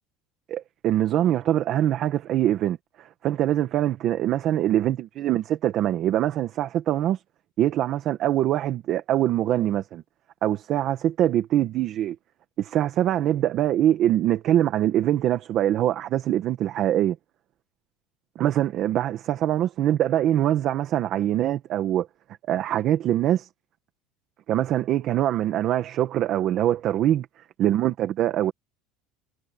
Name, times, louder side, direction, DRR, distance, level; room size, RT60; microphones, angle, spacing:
voice 1, 0.5-7.2 7.6-10.0 10.4-12.1 12.6-17.2 18.3-22.1 22.5-23.5 24.5-27.3 27.6-28.5, right 12 dB, 40° right, 1.5 m, -23 dB
cardioid pair, 165°, 0 cm